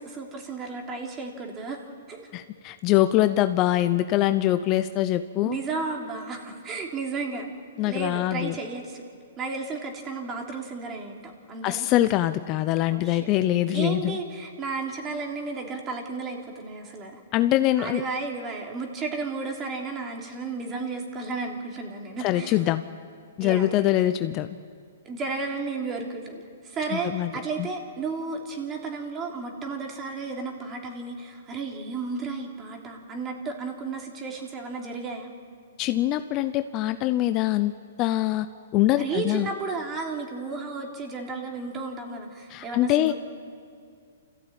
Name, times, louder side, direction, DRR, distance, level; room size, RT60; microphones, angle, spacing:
voice 1, 0.0-2.3 5.4-7.4 7.8-9.0 9.4-11.9 12.9-13.2 13.7-17.2 17.8-22.5 23.4-24.0 25.0-35.3 38.9-43.1, right 4 dB, 20° right, 1 dB, 3.3 m, -33 dB
voice 2, 2.3-5.6 7.8-8.6 11.6-14.2 17.3-18.0 22.2-22.8 23.4-24.5 26.9-27.3 27.6-27.7 35.8-37.7 38.0-38.5 38.7-39.5 42.5-43.1, left 14 dB, 35° left, 11 dB, 0.7 m, -23 dB
28.0 x 15.0 x 9.0 m, 2.2 s
hypercardioid pair, 135°, 0 cm